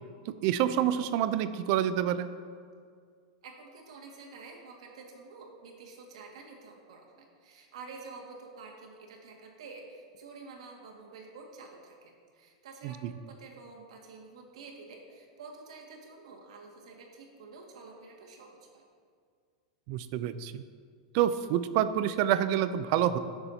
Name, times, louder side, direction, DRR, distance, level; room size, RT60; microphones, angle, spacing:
voice 1, 0.3-2.3 12.8-13.1 19.9-20.6 21.1-23.2, right 11 dB, 40° right, 12 dB, 0.4 m, -27 dB
voice 2, 3.4-18.8, right 4 dB, 80° right, 0 dB, 1.9 m, -49 dB
16.5 x 6.9 x 2.8 m, 2.1 s
supercardioid pair, 165°, 3 cm